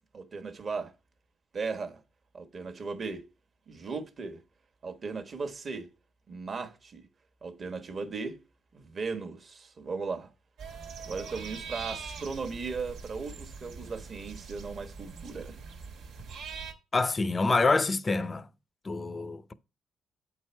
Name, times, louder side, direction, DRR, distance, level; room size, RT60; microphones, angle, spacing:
voice 1, 0.1-0.9 1.5-2.0 2.3-3.3 3.7-4.4 4.8-5.9 6.3-7.1 7.4-8.4 8.7-10.3 11.1-15.6, right 4 dB, 45° right, 1.2 m, -37 dB
sound 1, 10.6-16.7, right 5 dB, 85° right, 1.5 m, -42 dB
voice 2, 16.9-18.5 18.8-19.5, left 3 dB, 30° left, 0.6 m, -26 dB
8.1 x 4.7 x 4.4 m
cardioid pair, 90°, 0 cm